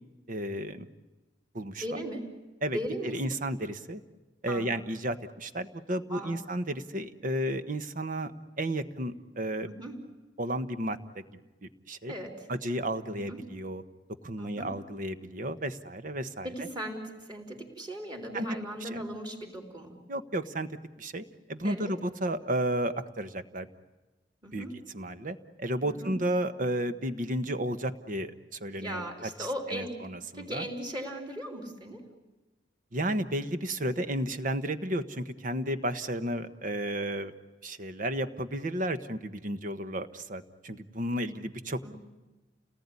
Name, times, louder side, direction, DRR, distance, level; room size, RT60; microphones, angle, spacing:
voice 1, 0.3-0.9 1.5-2.0 2.6-2.8 3.1-4.0 4.4-8.3 8.6-9.7 10.4-12.1 12.5-13.8 14.2-16.5 18.3-18.5 20.1-20.7 21.0-23.7 24.5-24.6 24.9-30.7 32.9-37.3 37.6-41.8, right 1 dB, 45° right, 11 dB, 1.3 m, -33 dB
voice 2, 1.8-2.3 2.7-3.2 4.5-4.7 6.1-6.4 9.6-10.0 12.1-12.5 13.1-13.4 14.4-14.7 16.4-19.9 21.6-21.9 24.4-24.8 25.8-26.2 28.7-30.0 30.3-32.1 41.8-42.0, equal, 25° right, 2 dB, 4.1 m, -38 dB
29.5 x 19.0 x 9.7 m, 1.1 s
head